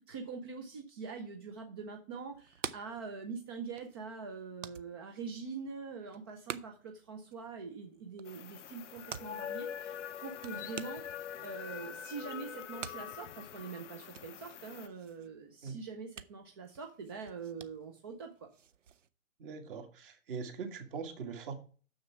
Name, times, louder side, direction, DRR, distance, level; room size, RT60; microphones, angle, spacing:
voice 1, 0.0-11.0 11.4-18.5, right 5 dB, 20° right, 4 dB, 0.5 m, -44 dB
sound 1, 2.3-19.1, right 8 dB, 65° right, 0.8 m, -50 dB
sound 2, 8.3-14.9, left 9 dB, 60° left, 0.6 m, -44 dB
voice 2, 19.4-21.5, right 5 dB, 40° right, 5 dB, 2.1 m, -41 dB
6.8 x 6.5 x 5.9 m, 0.39 s
figure-of-eight pair, 135°, 41 cm